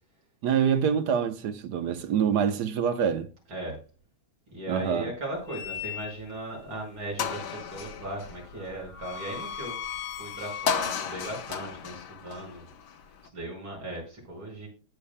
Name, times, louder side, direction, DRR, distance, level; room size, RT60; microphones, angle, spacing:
voice 1, 0.4-3.3 4.7-5.1, right 7 dB, 60° right, 1.3 m, -25 dB
voice 2, 3.5-3.8 4.5-9.8 10.1-12.7 13.3-14.7, right 1 dB, 80° right, 6.3 m, -37 dB
sound 1, 5.5-6.4 6.8-6.9 7.2-13.3, left 7 dB, 60° left, 1.4 m, -35 dB
19.0 x 7.1 x 2.2 m
omnidirectional pair, 2.2 m